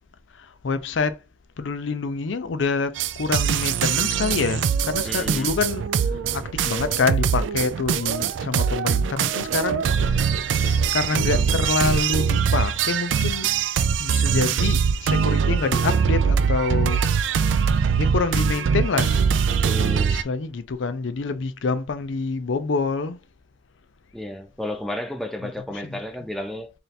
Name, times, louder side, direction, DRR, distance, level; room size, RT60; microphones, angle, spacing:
voice 1, 0.4-1.2 1.6-5.8 6.3-13.5 14.0-17.0 18.0-19.2 20.1-23.2 25.8-26.0, left 4 dB, 80° left, 0.5 m, -26 dB
sound 1, 3.0-20.2, right 6 dB, 80° right, 0.3 m, -22 dB
voice 2, 5.0-5.6 19.6-20.3 24.1-26.7, left 1 dB, ahead, 0.4 m, -32 dB
3.3 x 2.8 x 4.0 m
head